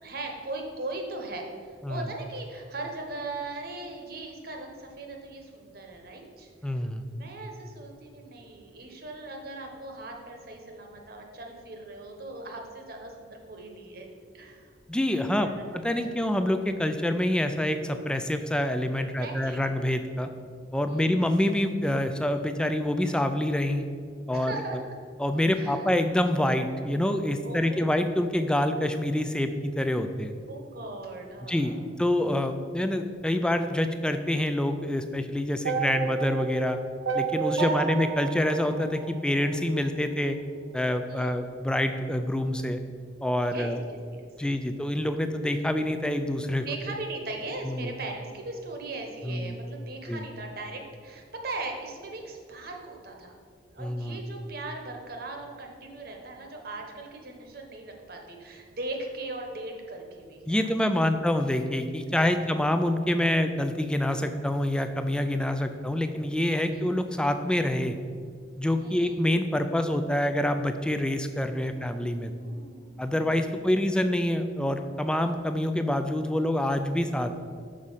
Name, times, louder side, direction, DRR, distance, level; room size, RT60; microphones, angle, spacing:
voice 1, 0.0-1.5 1.9-14.1 14.3-14.7 15.3-15.5 15.9-16.2 19.0-19.7 20.1-20.3 20.9-21.2 24.3-24.9 25.5-25.8 27.4-28.0 30.5-31.8 35.6-36.3 37.5-37.7 41.1-41.5 43.5-44.3 46.6-53.4 53.7-60.4 62.2-62.5 66.7-66.8 68.8-69.2 71.7-73.6, right 2 dB, 55° right, 2 dB, 1.0 m, -39 dB
voice 2, 6.6-7.0 14.9-15.5 15.8-20.3 20.7-23.9 24.3-24.5 25.2-30.3 31.5-36.8 37.1-40.4 40.7-42.8 43.2-43.8 44.4-46.7 47.6-47.9 49.2-49.6 50.1-50.2 53.8-54.2 60.5-67.9 68.6-72.3 73.0-77.4, left 1 dB, 5° left, 8 dB, 0.3 m, -26 dB
sound 1, 35.7-39.8, right 5 dB, 85° right, 0.6 m, -31 dB
6.4 x 5.1 x 5.6 m, 2.2 s
head